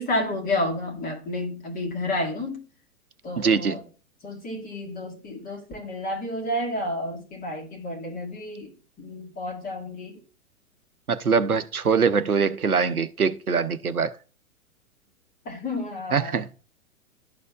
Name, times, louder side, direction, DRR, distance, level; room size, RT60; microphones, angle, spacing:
voice 1, 0.0-2.6 3.2-3.8 4.2-10.2 15.5-16.4, left 1 dB, 20° left, 1.9 m, -31 dB
voice 2, 3.4-3.8 11.1-14.2 16.1-16.5, right 5 dB, 90° right, 0.7 m, -23 dB
12.5 x 4.2 x 2.3 m
figure-of-eight pair, 110°, 43 cm